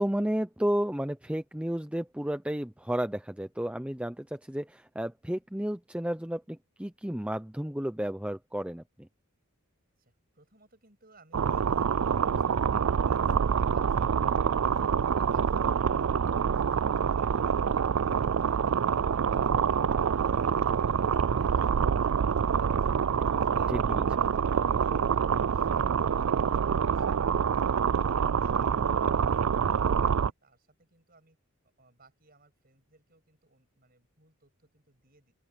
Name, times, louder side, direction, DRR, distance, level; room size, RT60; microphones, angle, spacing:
voice 1, 0.0-9.1 23.7-24.0, equal, 5° right, 0.6 m, -32 dB
voice 2, 10.0-15.7 16.1-27.7 28.0-31.4 31.8-35.3, right 3 dB, 40° right, 7.7 m, -64 dB
sound 1, 11.3-30.3, right 7 dB, 70° right, 0.4 m, -26 dB
open air
head